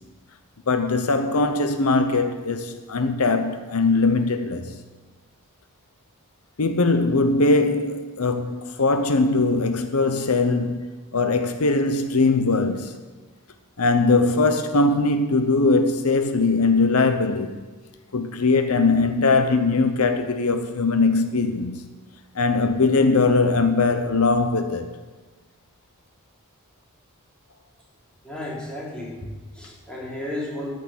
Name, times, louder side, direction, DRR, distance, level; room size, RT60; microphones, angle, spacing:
voice 1, 0.7-4.8 6.6-12.9 13.8-17.6 18.1-21.8 22.3-24.9, left 3 dB, 75° left, 0.8 m, -21 dB
voice 2, 28.2-30.7, left 1 dB, 5° left, 3.4 m, -33 dB
14.0 x 6.7 x 9.3 m
head